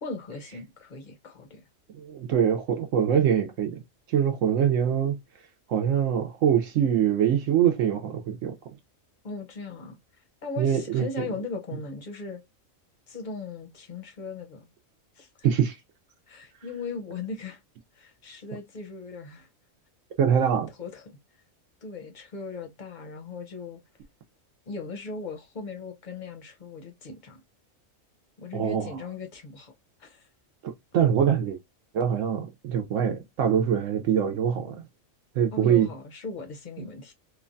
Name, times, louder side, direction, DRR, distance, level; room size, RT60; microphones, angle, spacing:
voice 1, 0.0-1.6 9.2-10.0 10.4-12.4 13.1-14.7 15.2-15.5 16.3-17.6 17.9-19.5 20.8-21.2 21.8-23.8 24.7-27.4 28.4-29.7 30.0-30.3 35.5-37.1, left 4 dB, 45° left, 0.7 m, -38 dB
voice 2, 2.0-3.8 4.1-5.2 5.7-8.5 10.6-11.1 15.4-15.8 20.2-20.7 28.5-29.0 30.6-31.6 31.9-34.8 35.4-35.9 36.8-36.9, right 8 dB, 75° right, 0.9 m, -24 dB
3.1 x 2.1 x 2.4 m
omnidirectional pair, 1.4 m